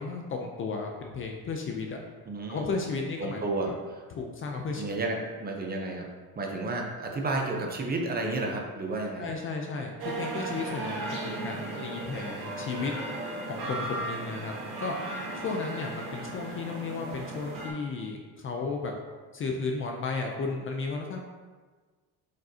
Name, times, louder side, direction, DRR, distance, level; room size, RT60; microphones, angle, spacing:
voice 1, 0.0-2.0 2.5-3.4 4.1-4.8 9.2-12.9 13.5-15.0 15.3-18.9 19.3-21.2, left 4 dB, 30° left, 2 dB, 0.5 m, -34 dB
voice 2, 2.3-2.6 3.2-4.0 4.8-6.1 6.3-9.3, right 2 dB, 25° right, 1 dB, 0.6 m, -32 dB
sound 1, 10.0-17.7, right 2 dB, 65° right, 1.6 m, -36 dB
7.4 x 5.3 x 2.7 m, 1.4 s
cardioid pair, 170°, 41 cm